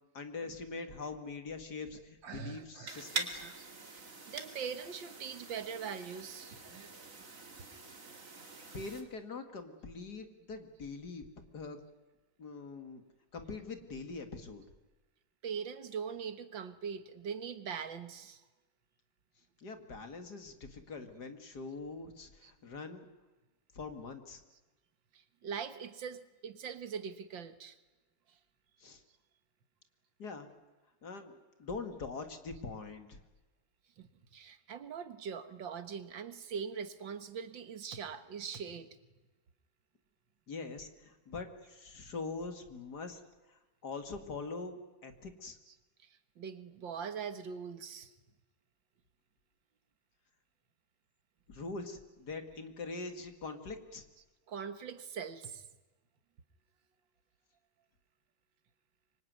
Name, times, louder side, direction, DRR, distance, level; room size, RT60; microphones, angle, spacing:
voice 1, 0.1-3.4 8.7-11.3 11.5-11.8 12.4-13.0 13.3-14.6 19.6-23.1 23.7-24.4 28.8-29.0 30.2-30.5 31.0-31.3 31.6-33.2 40.5-43.2 43.5-45.6 51.5-54.0, left 4 dB, 55° left, 7 dB, 2.8 m, -43 dB
voice 2, 2.2-3.7 3.9-7.0 15.4-18.4 22.4-22.5 25.1-27.8 34.0-38.9 45.7-45.8 46.4-48.1 54.2-55.6, right 6 dB, 75° right, 11 dB, 2.2 m, -42 dB
sound 1, 2.9-9.0, right 3 dB, 45° right, 2.9 m, -44 dB
25.5 x 24.0 x 9.6 m, 1.2 s
omnidirectional pair, 2.1 m